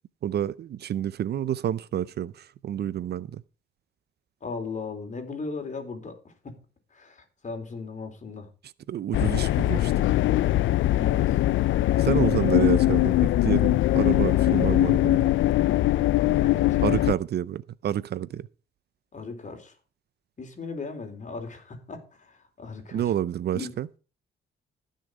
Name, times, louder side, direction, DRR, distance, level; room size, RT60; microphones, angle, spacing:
voice 1, 0.2-3.4 8.9-10.1 12.0-15.3 16.8-18.5 22.9-23.9, right 10 dB, 55° right, 0.5 m, -29 dB
voice 2, 4.4-6.6 6.9-8.5 10.9-11.4 11.9-12.2 15.7-16.1 16.4-17.0 19.1-19.7 20.4-23.1 23.5-23.7, left 4 dB, 40° left, 3.9 m, -37 dB
sound 1, 9.1-17.1, left 15 dB, 75° left, 0.5 m, -21 dB
15.5 x 6.6 x 4.9 m
cardioid pair, 90°, 20 cm